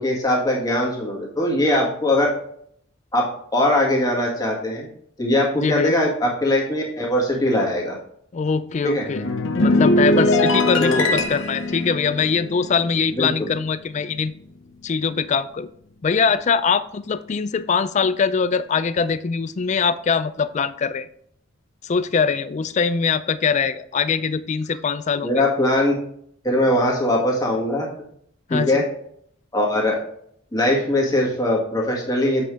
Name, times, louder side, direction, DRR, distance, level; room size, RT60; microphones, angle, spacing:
voice 1, 0.0-2.3 3.1-4.9 5.2-8.0 8.8-9.0 10.8-11.2 13.1-13.5 25.2-26.0 26.4-27.9 28.5-28.8 29.5-30.0 30.5-32.4, left 1 dB, 20° left, -2 dB, 1.8 m, -21 dB
voice 2, 5.6-5.9 8.3-9.3 9.6-14.3 14.8-15.7 16.0-21.1 21.8-25.4 28.5-28.8, left 5 dB, 35° left, 14 dB, 0.3 m, -22 dB
sound 1, 9.0-13.6 13.9-14.2, left 1 dB, 65° left, 0.8 m, -21 dB
7.6 x 5.7 x 3.2 m, 0.67 s
head